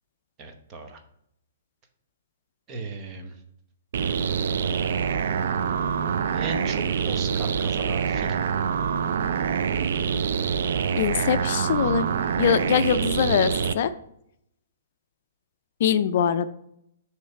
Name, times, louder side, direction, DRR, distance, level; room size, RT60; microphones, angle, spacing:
voice 1, 0.4-1.0 2.7-3.4 6.3-8.4 11.2-11.9, right 3 dB, 25° right, 5 dB, 0.8 m, -37 dB
sound 1, 3.9-13.7, right 7 dB, 65° right, 0.4 m, -25 dB
voice 2, 11.0-12.1 12.4-13.9 15.8-16.5, left 8 dB, 55° left, 12 dB, 0.4 m, -22 dB
6.6 x 3.1 x 5.6 m, 0.75 s
hypercardioid pair, 160°, 0 cm